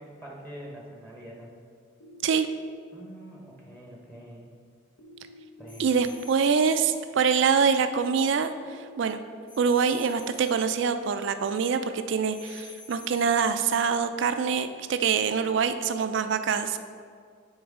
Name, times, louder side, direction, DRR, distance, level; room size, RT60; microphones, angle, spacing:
voice 1, 0.0-1.5 2.9-4.5 5.6-6.0, right 1 dB, 10° left, -3 dB, 0.8 m, -44 dB
sound 1, 2.0-3.0 5.0-6.0 8.0-9.0, left 1 dB, 65° left, 0.7 m, -49 dB
sound 2, 5.7-6.9 9.5-10.7 12.3-13.6, left 4 dB, 25° left, 1.1 m, -48 dB
voice 2, 5.8-9.2 9.6-16.8, right 6 dB, 65° right, 10 dB, 0.4 m, -25 dB
9.4 x 3.9 x 3.6 m, 2.1 s
head